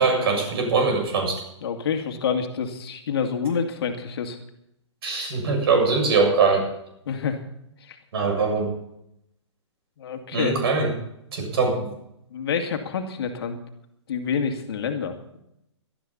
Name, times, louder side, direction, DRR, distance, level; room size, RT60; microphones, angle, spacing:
voice 1, 0.0-1.4 5.0-6.7 8.1-8.7 10.3-10.9 11.3-11.9, right 4 dB, 55° right, 2 dB, 7.1 m, -22 dB
voice 2, 1.6-4.4 7.1-7.4 7.8-8.0 10.0-10.6 12.3-13.6 14.1-15.4, left 6 dB, 55° left, 5 dB, 2.3 m, -27 dB
19.0 x 12.5 x 4.2 m, 0.79 s
figure-of-eight pair, 125°, 15 cm